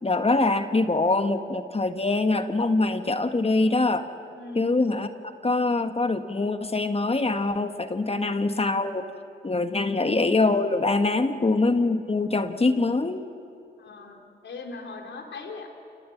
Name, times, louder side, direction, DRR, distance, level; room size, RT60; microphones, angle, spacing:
voice 1, 0.0-4.1 4.5-9.1 9.4-13.3, left 3 dB, 30° left, 8 dB, 1.6 m, -24 dB
voice 2, 4.3-4.8 8.0-8.4 9.8-10.2 11.4-11.6 13.8-14.2 14.4-15.7, left 3 dB, 60° left, 1 dB, 4.2 m, -40 dB
29.0 x 19.0 x 7.4 m, 2.5 s
hypercardioid pair, 40°, 21 cm